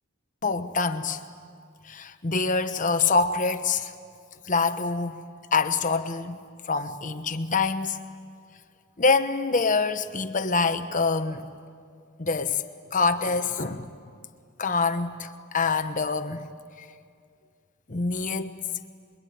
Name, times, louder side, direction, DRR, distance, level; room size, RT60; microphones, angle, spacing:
voice 1, 0.4-1.2 1.9-3.9 4.5-5.2 5.5-6.4 6.7-8.0 9.0-11.5 12.2-12.6 12.9-13.9 14.6-16.5 17.9-18.6, left 4 dB, 35° left, 1.1 m, -25 dB
26.0 x 22.5 x 9.4 m
head